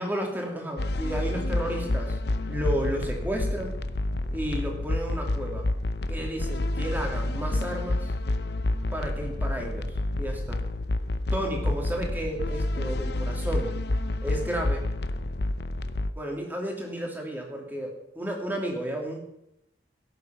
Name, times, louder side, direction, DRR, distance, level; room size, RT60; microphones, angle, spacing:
voice 1, 0.0-2.2 2.5-3.8 4.3-5.6 6.1-8.1 8.9-9.9 10.2-10.6 11.3-13.7 14.2-14.8 16.2-19.2, right 1 dB, 10° right, 0 dB, 2.9 m, -32 dB
sound 1, 0.8-16.1, left 2 dB, 65° left, 0.7 m, -29 dB
17.0 x 8.3 x 6.0 m, 0.81 s
head